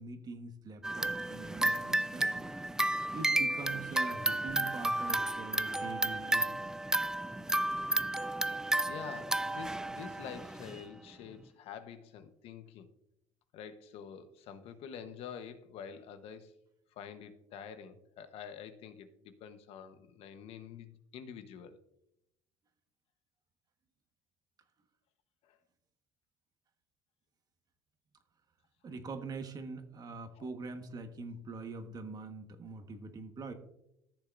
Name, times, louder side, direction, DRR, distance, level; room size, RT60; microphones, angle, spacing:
voice 1, 0.0-2.5 3.1-6.5 28.8-33.5, right 3 dB, 35° right, 7 dB, 1.3 m, -43 dB
sound 1, 0.8-10.8, right 1 dB, 5° right, 0.3 m, -32 dB
voice 2, 8.9-12.9 13.5-16.5 17.0-21.8 25.4-25.6 30.4-30.5, left 7 dB, 60° left, 10 dB, 1.0 m, -47 dB
14.5 x 6.7 x 2.5 m, 0.80 s
cardioid pair, 115°, 11 cm